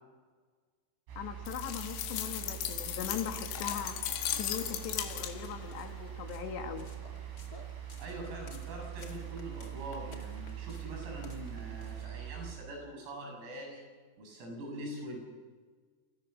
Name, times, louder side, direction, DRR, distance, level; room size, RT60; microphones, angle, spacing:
sound 1, 1.1-12.5, right 11 dB, 70° right, 6.7 m, -43 dB
voice 1, 1.2-4.0 4.3-6.9, left 8 dB, 65° left, 6 dB, 3.5 m, -39 dB
sound 2, 1.5-5.6, left 11 dB, 90° left, 4.6 m, -37 dB
sound 3, 3.0-12.1, left 3 dB, 45° left, 1.1 m, -56 dB
voice 2, 8.0-13.8 14.2-15.2, right 1 dB, 90° right, 1 dB, 10.5 m, -43 dB
29.0 x 27.5 x 7.2 m, 1.5 s
omnidirectional pair, 5.9 m